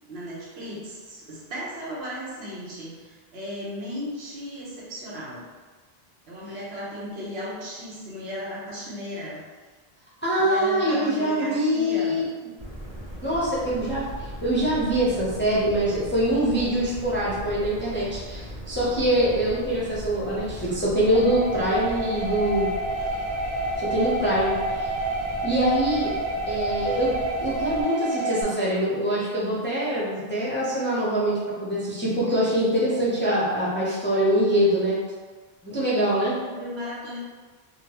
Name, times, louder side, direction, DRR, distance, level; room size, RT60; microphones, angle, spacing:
voice 1, 0.1-5.5 6.3-9.4 10.3-12.2 36.3-37.2, equal, 80° right, -5 dB, 1.1 m, -36 dB
voice 2, 10.2-12.2 13.2-14.1 14.4-22.7 23.8-24.9 25.4-26.1 26.5-27.1 27.4-35.0 35.6-36.4, right 1 dB, 15° left, -8 dB, 0.5 m, -24 dB
sound 1, 12.6-27.8, equal, 40° right, 1.2 m, -38 dB
sound 2, 21.1-28.4, right 1 dB, 25° right, 0.7 m, -29 dB
3.8 x 2.2 x 2.9 m, 1.3 s
omnidirectional pair, 1.0 m